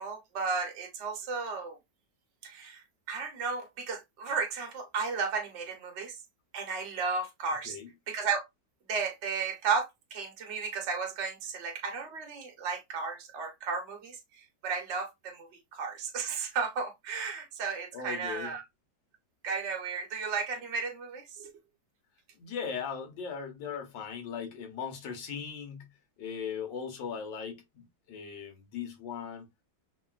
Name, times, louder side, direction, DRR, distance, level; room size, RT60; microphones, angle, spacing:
voice 1, 0.0-1.8 2.4-6.2 6.5-7.8 8.1-8.4 8.9-18.6 19.4-21.5, right 5 dB, 50° right, 0.9 m, -34 dB
voice 2, 17.9-18.5 22.4-25.9 26.2-29.5, left 6 dB, 75° left, 1.6 m, -38 dB
3.6 x 2.2 x 2.3 m
omnidirectional pair, 2.0 m